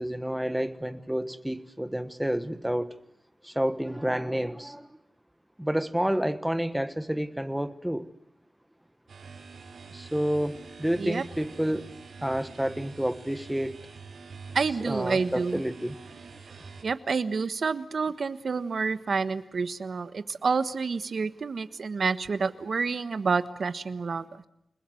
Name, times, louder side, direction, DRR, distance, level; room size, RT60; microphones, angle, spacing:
voice 1, 0.0-2.9 3.4-4.9 5.6-8.1 9.9-11.9 12.2-13.8 14.8-16.0, equal, 5° right, 1.3 m, -29 dB
sound 1, 9.1-16.8, right 4 dB, 85° right, 6.6 m, -46 dB
voice 2, 14.5-15.6 16.8-24.5, right 4 dB, 65° right, 1.3 m, -29 dB
29.5 x 20.0 x 7.8 m
wide cardioid pair, 120°, 0 cm